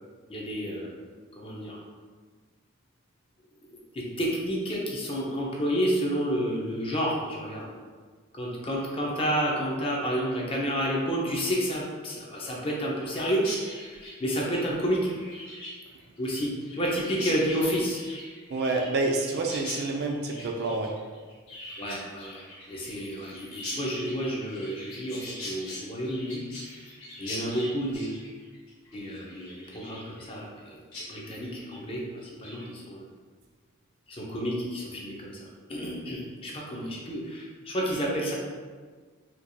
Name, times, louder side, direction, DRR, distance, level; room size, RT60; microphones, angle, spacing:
voice 1, 0.3-0.9 1.4-1.8 3.9-7.7 8.3-15.1 16.2-18.0 21.8-28.2 28.9-30.8 31.1-33.1 34.1-38.3, equal, 25° left, -3 dB, 0.6 m, -30 dB
Chirp tweet, 13.4-30.6 30.9-31.1 31.4-31.8 32.2-32.6, left 1 dB, 90° left, 1.1 m, -42 dB
voice 2, 18.5-20.9, right 3 dB, 50° right, 1 dB, 0.4 m, -28 dB
4.4 x 2.4 x 2.6 m, 1.5 s
head